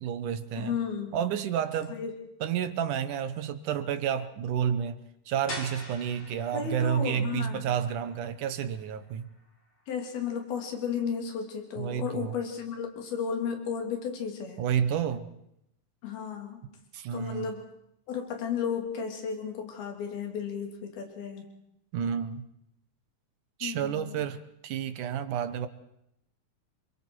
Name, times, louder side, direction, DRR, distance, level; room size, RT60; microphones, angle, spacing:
voice 1, 0.0-0.7 1.1-2.0 2.4-5.0 5.3-9.3 11.8-12.3 14.6-15.3 16.9-17.5 21.9-22.5 23.6-25.7, right 8 dB, 65° right, 11 dB, 2.3 m, -30 dB
voice 2, 0.6-1.2 1.9-2.1 6.5-7.6 9.9-14.6 16.0-16.6 17.1-17.6 18.1-21.5 23.6-24.2, left 7 dB, 80° left, 3 dB, 4.6 m, -34 dB
sound 1, 5.5-11.1, left 1 dB, 45° left, 5.7 m, -46 dB
28.0 x 22.5 x 4.6 m, 0.79 s
omnidirectional pair, 4.3 m